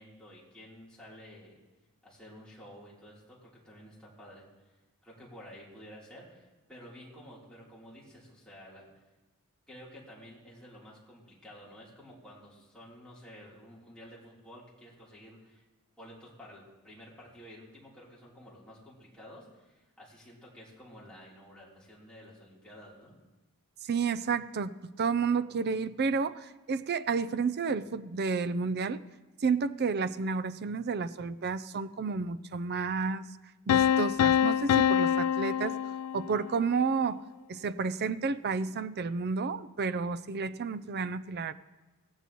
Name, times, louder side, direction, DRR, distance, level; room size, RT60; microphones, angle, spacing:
voice 1, 0.0-1.6 2.0-4.7 5.0-8.9 9.7-15.6 16.0-23.2, equal, 5° left, -7 dB, 3.3 m, -51 dB
voice 2, 23.8-29.0 29.4-33.3 33.7-35.8 36.1-37.2 37.5-41.5, right 5 dB, 45° right, 13 dB, 0.5 m, -31 dB
sound 1, 33.7-36.6, left 9 dB, 85° left, 0.3 m, -25 dB
16.0 x 15.0 x 3.0 m, 1.1 s
head